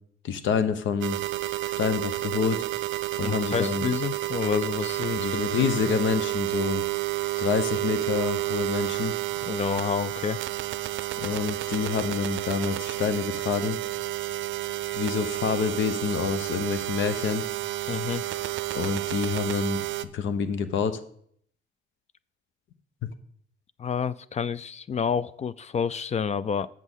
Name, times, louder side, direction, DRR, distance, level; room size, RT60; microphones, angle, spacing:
voice 1, 0.2-1.2 1.8-2.6 3.2-3.9 5.2-6.8 7.4-9.1 11.2-13.8 14.9-17.5 18.7-21.0, left 6 dB, 75° left, 1.0 m, -27 dB
sound 1, 1.0-20.1, right 16 dB, 75° right, 0.5 m, -30 dB
voice 2, 3.2-6.0 9.4-10.4 17.9-18.2 23.8-26.7, left 7 dB, 35° left, 0.4 m, -29 dB
7.4 x 6.2 x 7.2 m
cardioid pair, 90°, 20 cm